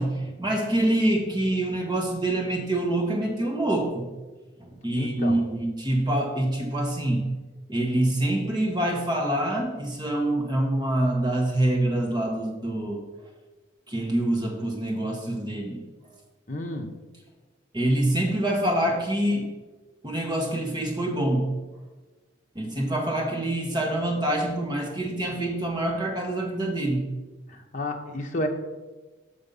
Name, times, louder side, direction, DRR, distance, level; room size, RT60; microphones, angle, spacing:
voice 1, 0.0-4.0 4.6-7.3 7.7-13.0 13.9-15.8 17.7-19.5 20.0-21.5 22.5-27.0, right 1 dB, 20° right, 0 dB, 1.2 m, -26 dB
voice 2, 4.9-5.4 16.5-16.9 27.5-28.5, left 1 dB, 40° left, 2 dB, 0.9 m, -31 dB
6.9 x 5.3 x 5.4 m, 1.2 s
head